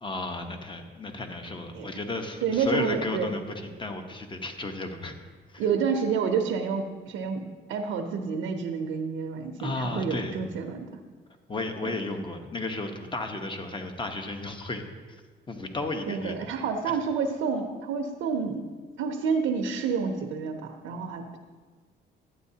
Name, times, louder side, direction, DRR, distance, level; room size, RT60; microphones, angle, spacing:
voice 1, 0.0-5.1 5.5-5.6 9.6-10.4 11.5-14.8 15.5-16.5, left 2 dB, 25° left, 5 dB, 1.0 m, -33 dB
voice 2, 2.4-3.3 5.6-10.9 16.1-18.6 19.0-21.4, right 6 dB, 90° right, 4 dB, 0.7 m, -29 dB
11.5 x 8.9 x 2.8 m, 1.4 s
cardioid pair, 90°, 20 cm